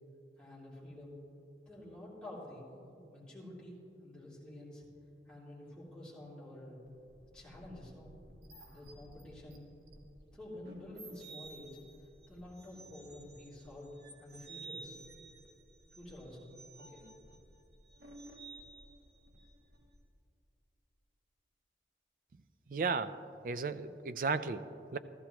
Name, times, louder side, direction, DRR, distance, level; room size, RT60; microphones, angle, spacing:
voice 1, 0.4-1.2 1.7-4.9 5.2-6.8 7.3-8.1 8.7-9.7 10.3-11.8 12.3-15.0 15.9-17.1, left 1 dB, 5° left, -9 dB, 3.1 m, -49 dB
sound 1, 6.9-20.0, right 2 dB, 70° right, 1.5 m, -53 dB
voice 2, 22.7-25.0, right 4 dB, 50° right, 12 dB, 0.4 m, -35 dB
14.5 x 13.5 x 3.0 m, 2.6 s
head